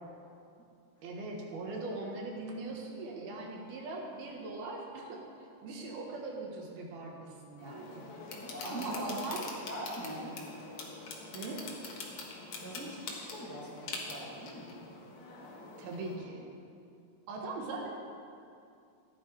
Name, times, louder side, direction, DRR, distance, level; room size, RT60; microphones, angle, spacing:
voice 1, 1.0-8.0 8.6-9.5 11.3-11.6 15.8-16.4 17.3-17.9, right 2 dB, 70° right, 0 dB, 3.3 m, -40 dB
sound 1, 7.6-16.2, left 3 dB, 55° left, 2.2 m, -44 dB
voice 2, 8.3-9.1 9.7-10.4 12.6-14.8, equal, 15° left, -6 dB, 0.5 m, -43 dB
15.5 x 10.5 x 4.7 m, 2.5 s
omnidirectional pair, 4.7 m